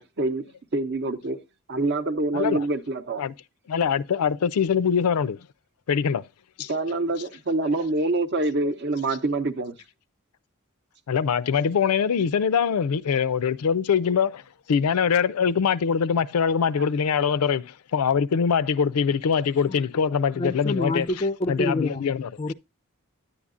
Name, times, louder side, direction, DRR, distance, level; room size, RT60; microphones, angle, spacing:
voice 1, 0.0-1.4 1.7-3.2 6.7-9.8, right 2 dB, 50° right, 0.7 m, -26 dB
voice 2, 2.3-2.7 3.2-3.3 3.7-5.4 5.9-6.2 6.6-6.7 11.1-14.4 14.7-21.1 21.5-22.3, left 6 dB, 90° left, 0.4 m, -23 dB
voice 3, 20.3-22.1 22.4-22.5, left 2 dB, 25° left, 0.4 m, -27 dB
9.8 x 8.5 x 2.4 m
head